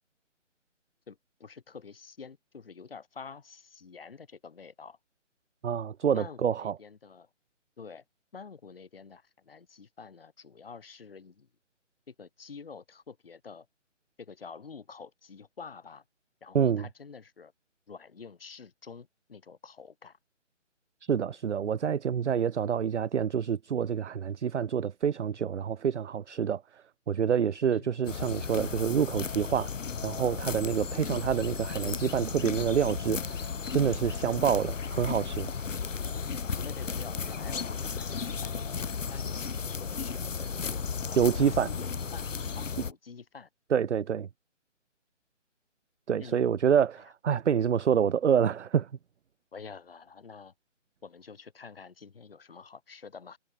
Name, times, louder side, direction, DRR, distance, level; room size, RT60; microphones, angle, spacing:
voice 1, 1.1-5.0 6.1-7.3 7.8-8.0 8.3-11.5 12.1-13.7 14.2-16.0 16.4-17.5 17.9-20.2 27.7-27.9 31.0-31.3 34.2-34.5 35.8-36.1 36.6-40.8 41.1-43.5 46.2-46.4 49.5-50.5 51.0-53.4, left 5 dB, 50° left, 5.6 m, -48 dB
voice 2, 5.6-6.8 16.5-16.9 21.0-29.7 30.0-35.5 41.1-41.7 43.7-44.3 46.1-48.9, right 8 dB, 65° right, 0.5 m, -27 dB
sound 1, 28.1-42.9, left 5 dB, 80° left, 0.8 m, -34 dB
figure-of-eight pair, 150°, 37 cm